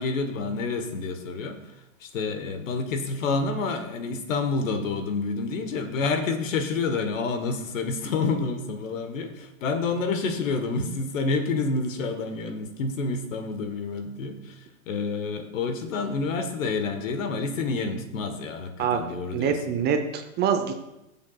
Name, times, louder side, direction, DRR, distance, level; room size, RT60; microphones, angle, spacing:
voice 1, 0.0-1.6 2.0-19.7, left 4 dB, 65° left, 7 dB, 1.5 m, -28 dB
voice 2, 19.3-20.7, right 7 dB, 25° right, 6 dB, 0.8 m, -25 dB
18.5 x 7.4 x 2.4 m, 0.92 s
hypercardioid pair, 115°, 42 cm